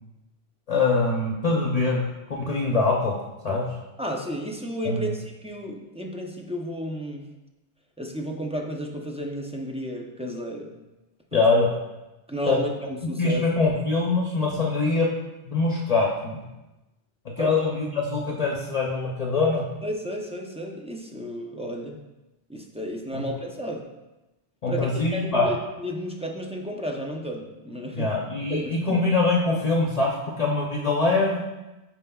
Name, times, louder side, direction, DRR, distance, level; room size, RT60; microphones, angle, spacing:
voice 1, 0.7-3.1 3.4-3.6 4.8-5.1 11.3-11.7 12.5-12.6 13.2-15.1 15.5-16.4 17.4-19.6 23.1-23.2 24.6-25.5 27.9-31.4, left 3 dB, 40° left, -2 dB, 0.7 m, -23 dB
voice 2, 4.0-7.2 8.0-10.8 11.3-11.4 12.3-13.4 17.4-17.5 19.8-22.0 22.5-23.9 24.7-28.1 28.5-29.0, equal, 10° right, 0 dB, 0.4 m, -32 dB
9.2 x 4.4 x 2.3 m, 1.0 s
omnidirectional pair, 1.1 m